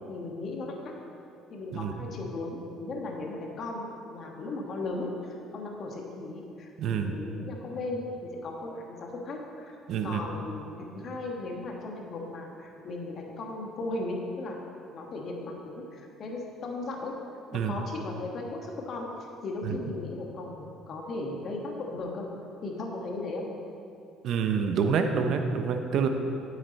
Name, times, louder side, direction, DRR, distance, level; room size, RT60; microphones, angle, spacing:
voice 1, 0.1-0.9 1.5-9.7 10.0-14.6 14.9-17.1 17.5-19.1 19.4-22.3 22.6-23.4, left 2 dB, 45° left, 0 dB, 1.4 m, -36 dB
voice 2, 1.7-2.1 6.8-7.2 9.9-10.2 17.5-17.7 19.6-19.8 24.2-26.1, right 6 dB, 55° right, 6 dB, 0.7 m, -27 dB
9.3 x 8.1 x 4.1 m, 2.6 s
cardioid pair, 130°, 0 cm